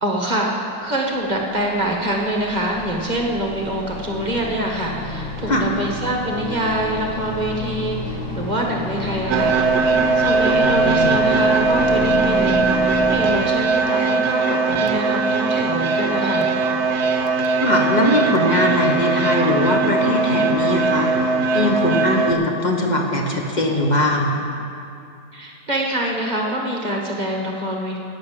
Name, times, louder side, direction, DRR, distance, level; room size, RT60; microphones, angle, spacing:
voice 1, 0.0-9.9 10.1-16.5 25.3-28.0, right 1 dB, 25° right, -1 dB, 1.4 m, -25 dB
sound 1, 1.1-13.2, left 1 dB, 80° left, 4.2 m, -31 dB
sound 2, 9.3-22.3, right 3 dB, 65° right, 1.2 m, -19 dB
voice 2, 10.5-11.2 17.6-21.1 21.5-24.3, left 1 dB, 25° left, 0 dB, 1.4 m, -20 dB
14.0 x 6.7 x 9.4 m, 2.5 s
omnidirectional pair, 2.0 m